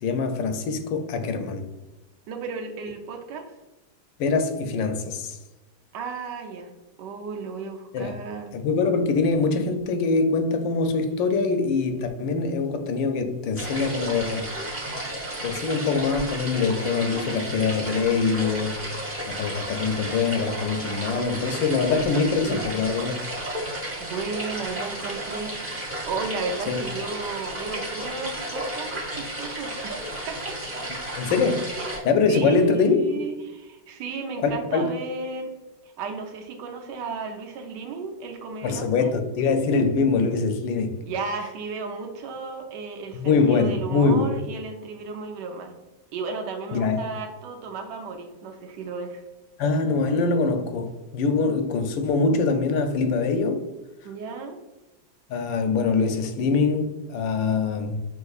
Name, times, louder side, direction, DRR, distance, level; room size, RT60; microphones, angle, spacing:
voice 1, 0.0-1.6 4.2-5.4 7.9-8.1 8.5-14.5 15.4-18.7 19.3-23.2 26.7-26.8 31.1-31.8 32.0-33.2 34.4-34.9 38.6-41.0 43.1-44.4 46.7-47.0 49.6-53.6 55.3-58.0, left 4 dB, 85° left, 1.3 m, -23 dB
voice 2, 2.3-3.5 5.9-6.7 7.0-8.5 22.4-22.7 24.0-25.5 26.1-30.6 31.8-32.0 32.3-35.5 36.0-39.2 41.1-45.8 46.1-49.2 54.0-54.6, right 4 dB, 75° right, 1.3 m, -34 dB
sound 1, 13.5-32.0, right 1 dB, 15° right, 0.4 m, -33 dB
5.9 x 2.9 x 2.4 m
omnidirectional pair, 2.0 m